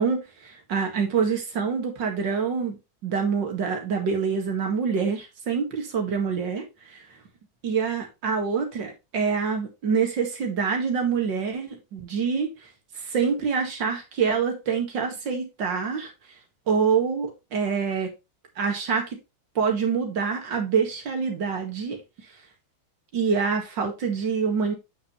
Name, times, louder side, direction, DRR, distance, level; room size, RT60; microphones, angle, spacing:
voice 1, 0.0-6.6 6.9-7.0 7.6-12.5 13.0-16.1 16.7-18.1 18.6-19.2 19.6-22.0 23.1-24.7, right 6 dB, 65° right, 2.4 m, -26 dB
8.5 x 5.7 x 3.1 m
omnidirectional pair, 2.2 m